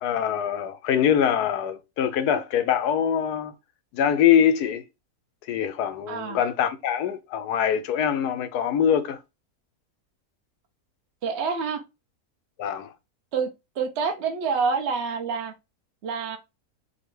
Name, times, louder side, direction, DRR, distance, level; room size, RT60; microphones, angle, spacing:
voice 1, 0.0-3.5 3.9-4.8 5.5-9.2 12.6-12.9, left 8 dB, 90° left, 1.2 m, -23 dB
voice 2, 6.1-6.4 11.2-11.8 13.3-13.5 13.8-15.5 16.0-16.4, right 5 dB, 50° right, 1.0 m, -27 dB
5.2 x 2.4 x 3.2 m
omnidirectional pair, 1.6 m